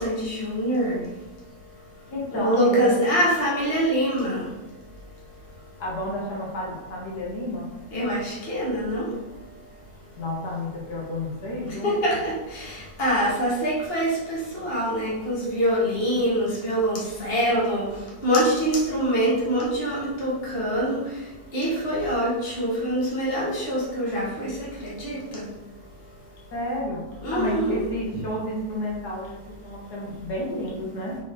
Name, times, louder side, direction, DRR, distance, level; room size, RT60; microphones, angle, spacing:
voice 1, 0.0-1.0 2.3-4.4 7.9-9.1 11.8-17.9 18.2-21.0 21.5-24.5 24.8-25.4 27.2-27.8, equal, 40° left, -5 dB, 1.8 m, -24 dB
voice 2, 2.1-3.0 5.8-7.8 10.2-11.9 26.5-31.2, left 1 dB, 85° left, -4 dB, 2.1 m, -31 dB
5.7 x 4.6 x 3.7 m, 1.1 s
omnidirectional pair, 1.7 m